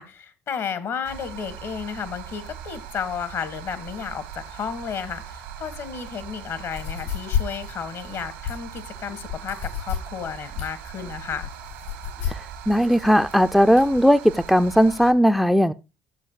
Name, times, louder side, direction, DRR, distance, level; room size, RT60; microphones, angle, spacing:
voice 1, 0.0-11.5, left 7 dB, 60° left, 1.5 m, -33 dB
sound 1, 1.0-15.1, right 8 dB, 85° right, 1.3 m, -40 dB
sound 2, 6.7-14.0, left 8 dB, 85° left, 6.1 m, -31 dB
voice 2, 12.3-15.7, equal, ahead, 0.5 m, -18 dB
14.5 x 7.6 x 2.2 m
hypercardioid pair, 55°, 6 cm